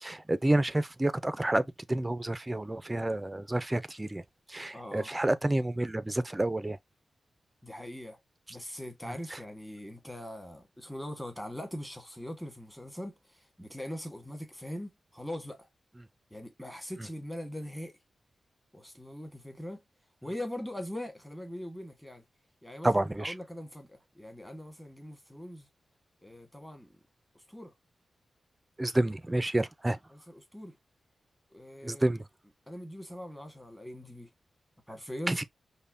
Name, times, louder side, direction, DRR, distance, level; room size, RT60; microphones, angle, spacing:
voice 1, 0.0-4.2 4.5-6.8 9.3-9.4 22.8-23.3 28.8-30.0 31.8-32.2 35.3-35.4, right 1 dB, 20° right, 0.4 m, -29 dB
voice 2, 4.7-5.1 7.6-8.2 8.5-15.7 16.3-18.0 18.7-19.8 20.2-22.2 22.6-25.7 26.2-26.9 27.3-27.7 30.1-30.8 31.5-32.1 32.7-34.3 34.9-35.4, left 1 dB, 5° left, 1.4 m, -41 dB
5.4 x 2.1 x 2.6 m
cardioid pair, 75°, 0 cm